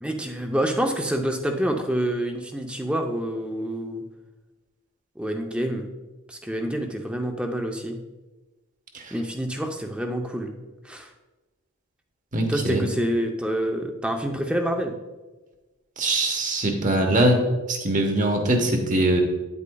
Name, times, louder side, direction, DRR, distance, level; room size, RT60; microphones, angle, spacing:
voice 1, 0.0-4.0 5.2-5.9 6.3-8.0 9.1-10.5 10.8-11.1 12.5-14.9, right 1 dB, 5° right, 3 dB, 0.6 m, -27 dB
voice 2, 12.3-12.8 16.0-17.4 17.7-19.2, right 1 dB, 35° right, 4 dB, 1.1 m, -22 dB
9.6 x 8.4 x 2.3 m, 1.2 s
head